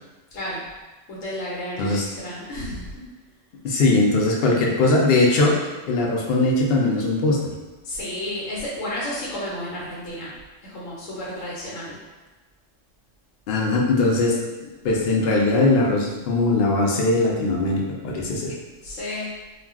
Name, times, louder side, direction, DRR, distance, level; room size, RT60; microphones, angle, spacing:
voice 1, 1.1-3.1 7.8-10.3 10.6-12.0 18.8-19.3, left 1 dB, 90° left, -7 dB, 1.1 m, -32 dB
voice 2, 3.6-5.6 5.9-7.5 13.5-14.4 14.8-18.5, left 2 dB, 65° left, -2 dB, 0.6 m, -20 dB
2.4 x 2.2 x 3.4 m, 1.2 s
omnidirectional pair, 1.3 m